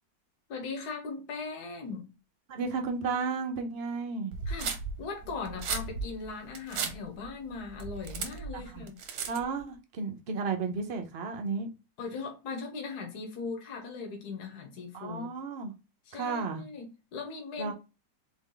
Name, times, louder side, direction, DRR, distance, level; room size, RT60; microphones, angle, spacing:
voice 1, 0.5-2.1 4.5-9.0 12.0-15.3 16.1-17.7, left 4 dB, 70° left, 1.5 m, -39 dB
voice 2, 2.5-4.3 8.5-8.9 9.3-11.7 14.9-15.7 16.1-16.6 17.6-17.7, right 4 dB, 50° right, 0.8 m, -33 dB
sound 1, 4.3-9.6, right 5 dB, 65° right, 1.2 m, -36 dB
4.0 x 3.4 x 3.8 m
omnidirectional pair, 1.8 m